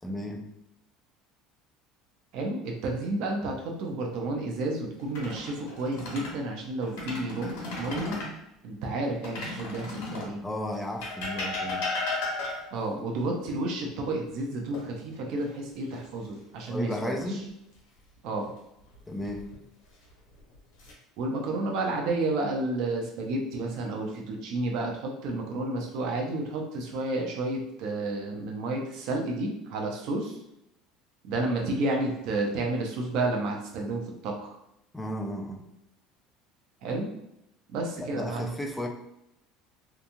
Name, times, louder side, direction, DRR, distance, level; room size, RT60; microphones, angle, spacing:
voice 1, 0.0-0.4 10.4-11.9 16.7-17.4 19.1-19.5 34.9-35.6 38.0-38.9, left 1 dB, 5° left, 2 dB, 0.3 m, -34 dB
voice 2, 2.3-8.2 8.6-10.4 12.7-17.2 18.2-18.5 21.2-30.4 31.2-34.6 36.8-37.1 37.7-38.5, right 2 dB, 55° right, 0 dB, 0.5 m, -31 dB
sound 1, 5.0-6.4 6.8-8.4 9.2-10.4 11.0-12.8 14.7-15.4 15.8-16.0 19.0-19.6 20.3-20.9, left 3 dB, 85° left, 1.1 m, -35 dB
2.9 x 2.3 x 2.5 m, 0.82 s
cardioid pair, 170°, 0 cm